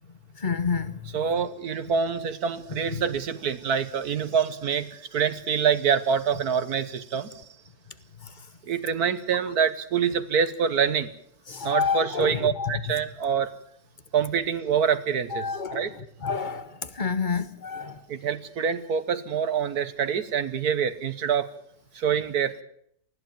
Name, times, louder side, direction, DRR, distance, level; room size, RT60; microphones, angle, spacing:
voice 1, 0.3-1.2 2.9-3.0 8.2-8.5 11.5-12.7 15.3-18.0, left 5 dB, 30° left, 1.1 m, -29 dB
voice 2, 1.1-7.3 8.7-11.1 11.6-13.5 14.1-15.4 15.7-15.9 18.1-21.5 21.9-22.5, right 7 dB, 65° right, 1.6 m, -26 dB
20.5 x 14.5 x 9.1 m
omnidirectional pair, 1.8 m